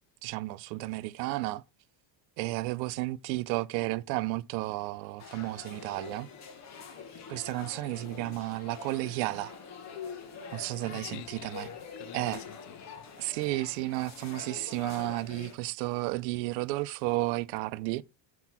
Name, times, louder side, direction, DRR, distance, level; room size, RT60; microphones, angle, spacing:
voice 1, 0.2-1.6 2.4-6.3 7.3-9.5 10.5-11.7 12.1-12.5 13.2-18.0, right 19 dB, 90° right, 0.6 m, -32 dB
sound 1, 5.2-15.5, left 6 dB, 35° left, 1.2 m, -45 dB
voice 2, 10.8-13.0, left 14 dB, 65° left, 0.6 m, -47 dB
6.0 x 4.6 x 5.9 m
cardioid pair, 150°, 49 cm